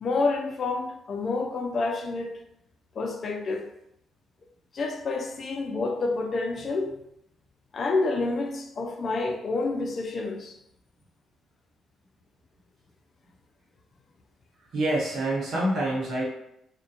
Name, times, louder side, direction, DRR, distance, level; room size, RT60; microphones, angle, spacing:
voice 1, 0.0-2.4 3.0-3.7 4.7-7.0 7.7-10.6, left 3 dB, 50° left, 0.4 m, -28 dB
voice 2, 14.7-16.2, right 1 dB, 70° right, 0.9 m, -26 dB
2.3 x 2.1 x 2.7 m
cardioid pair, 90°, 0 cm